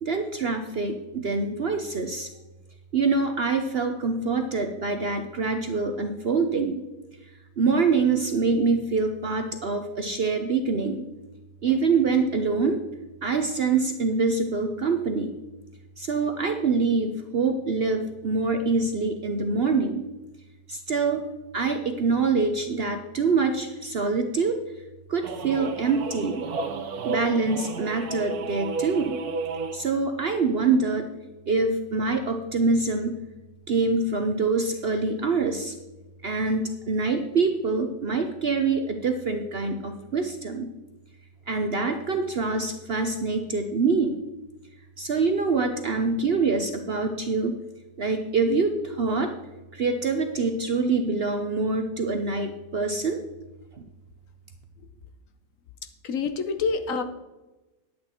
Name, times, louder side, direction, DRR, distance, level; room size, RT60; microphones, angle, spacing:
voice 1, 0.0-2.3 2.9-6.8 7.6-11.0 11.6-12.8 13.2-15.3 16.0-20.0 20.7-21.2 21.5-24.6 25.1-26.4 27.0-29.2 29.7-31.1 31.5-33.2 33.7-35.7 36.2-40.7 41.5-44.1 45.0-47.6 48.0-49.3 49.7-53.2, right 4 dB, 50° right, 6 dB, 0.7 m, -25 dB
sound 1, 25.2-29.9, right 4 dB, 70° right, 1.4 m, -32 dB
voice 2, 56.0-57.0, left 5 dB, 60° left, 8 dB, 1.0 m, -27 dB
10.5 x 8.5 x 4.4 m, 1.1 s
omnidirectional pair, 1.7 m